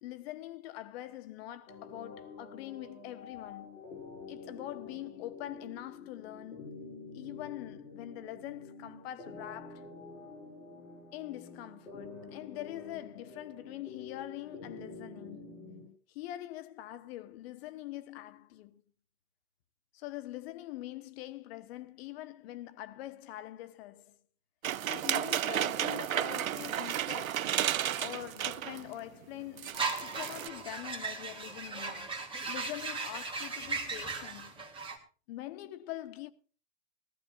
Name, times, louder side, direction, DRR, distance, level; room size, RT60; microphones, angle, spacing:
voice 1, 0.0-3.9 4.3-6.7 7.1-9.9 11.1-15.6 16.1-18.8 19.9-24.2 24.9-27.5 28.0-32.2 32.5-34.7 35.3-36.3, left 15 dB, 50° left, 1.3 m, -44 dB
sound 1, 1.7-15.9, left 4 dB, 80° left, 7.1 m, -48 dB
sound 2, 24.6-28.9 29.2-29.3 29.6-30.5, right 10 dB, 85° right, 0.6 m, -33 dB
sound 3, 29.7-35.0, right 4 dB, 15° right, 2.2 m, -37 dB
19.0 x 14.0 x 2.6 m
hypercardioid pair, 115°, 40 cm